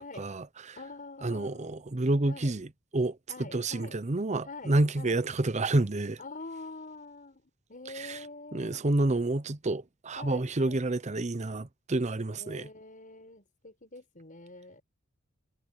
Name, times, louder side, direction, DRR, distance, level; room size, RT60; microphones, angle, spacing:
voice 1, 0.0-0.8 1.2-2.7 2.9-6.2 8.0-8.2 8.5-12.7, right 2 dB, 35° right, 0.8 m, -29 dB
voice 2, 0.8-1.8 2.3-2.5 3.3-4.0 4.4-5.2 6.2-7.4 7.7-8.9 10.2-10.8 12.3-14.8, left 3 dB, 40° left, 6.2 m, -45 dB
head